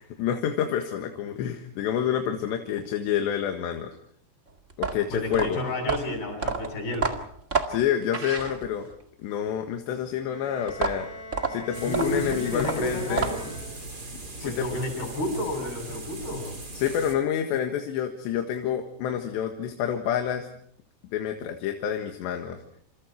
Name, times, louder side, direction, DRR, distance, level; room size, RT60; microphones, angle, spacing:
voice 1, 0.2-3.9 4.8-5.6 7.7-8.9 9.2-11.1 11.5-13.3 14.4-14.7 16.7-20.5 21.1-22.6, left 9 dB, 80° left, 5 dB, 3.8 m, -28 dB
sound 1, 4.7-9.0 10.7-13.6, right 4 dB, 45° right, 0.9 m, -30 dB
voice 2, 5.1-7.2 11.8-13.5 14.4-16.5, left 1 dB, 60° left, 3 dB, 10.0 m, -31 dB
Bowed string instrument, 10.3-14.1, left 1 dB, 35° left, 8.7 m, -42 dB
sound 2, 11.7-17.1, right 2 dB, 20° right, 4.5 m, -38 dB
28.5 x 27.5 x 4.6 m, 0.64 s
omnidirectional pair, 5.1 m